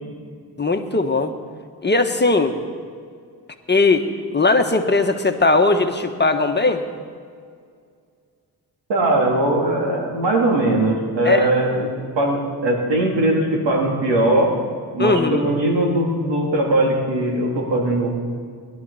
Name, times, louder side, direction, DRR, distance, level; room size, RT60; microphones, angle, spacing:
voice 1, 0.6-1.3 1.8-2.6 3.7-6.8 11.2-11.5 15.0-15.5, left 3 dB, 25° left, 6 dB, 1.4 m, -19 dB
voice 2, 8.9-14.5 14.9-18.1, right 1 dB, 70° right, -1 dB, 3.5 m, -20 dB
21.0 x 12.0 x 4.3 m, 2.1 s
supercardioid pair, 50°, 44 cm